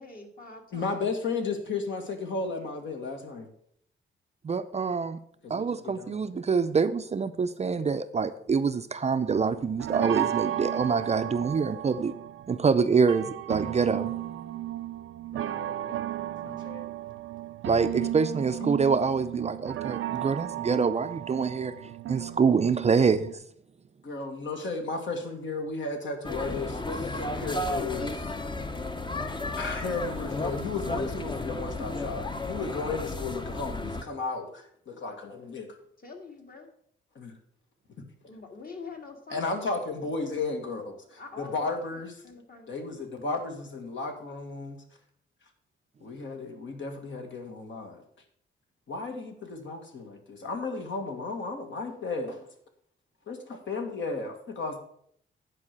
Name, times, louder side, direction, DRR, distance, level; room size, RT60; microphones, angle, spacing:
voice 1, 0.0-0.9 30.2-30.4 36.0-36.7 38.3-39.5 41.2-41.7 42.2-42.7, left 4 dB, 45° left, 3 dB, 2.0 m, -44 dB
voice 2, 0.7-3.5 5.4-6.5 15.3-16.8 18.0-19.0 24.0-28.3 29.6-35.7 37.1-37.4 38.0-38.1 39.3-42.2 42.7-44.8 46.0-48.0 48.9-52.5 53.3-54.8, left 3 dB, 65° left, 4 dB, 1.8 m, -34 dB
voice 3, 4.4-5.2 5.5-12.1 12.5-14.1 17.6-21.7 22.1-23.3, right 5 dB, 30° right, 10 dB, 0.4 m, -26 dB
sound 1, 9.2-23.3, right 13 dB, 85° right, 0.5 m, -34 dB
sound 2, 26.2-34.0, left 2 dB, 20° left, 0.7 m, -33 dB
9.7 x 4.8 x 6.4 m, 0.67 s
cardioid pair, 105°, 21 cm